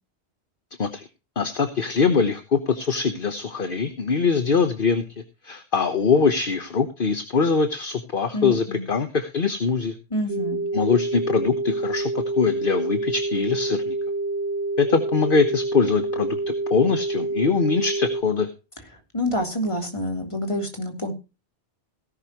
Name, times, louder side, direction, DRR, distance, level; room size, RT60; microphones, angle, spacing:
voice 1, 1.4-5.0 5.4-9.9 10.7-14.0 14.8-18.5, left 5 dB, 55° left, 8 dB, 1.3 m, -23 dB
voice 2, 8.3-8.8 10.1-10.6 19.1-21.1, left 1 dB, 30° left, 3 dB, 3.3 m, -27 dB
sound 1, 10.3-18.2, right 2 dB, 20° right, 1.1 m, -27 dB
17.0 x 11.0 x 3.0 m, 0.30 s
omnidirectional pair, 1.1 m